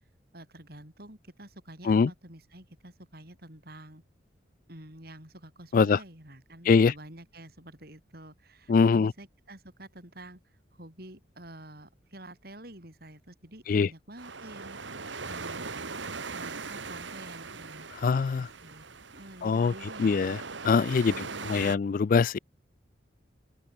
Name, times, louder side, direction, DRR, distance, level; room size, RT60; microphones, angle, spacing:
voice 1, 0.3-4.0 4.7-16.0 16.3-18.9 19.1-20.2 20.9-21.8, right 1 dB, 55° right, 7.4 m, -48 dB
voice 2, 8.7-9.1 13.7-13.9 18.0-18.5 19.4-19.7 20.0-20.4 20.6-21.1 21.5-22.4, left 5 dB, 45° left, 0.3 m, -22 dB
sound 1, 14.2-21.8, right 4 dB, 80° right, 2.3 m, -40 dB
open air
head